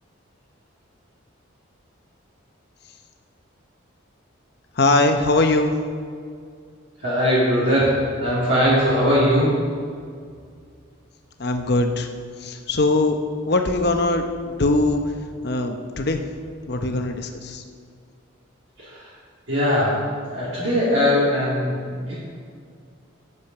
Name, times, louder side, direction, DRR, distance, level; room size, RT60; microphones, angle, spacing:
voice 1, 4.7-5.8 11.4-12.1 12.4-13.2 13.4-15.0 15.4-16.2 16.7-17.6, left 2 dB, 55° left, 5 dB, 0.8 m, -21 dB
voice 2, 7.0-9.6 18.8-19.1 19.5-22.1, equal, 60° right, -9 dB, 2.4 m, -20 dB
8.6 x 8.3 x 5.9 m, 2.2 s
head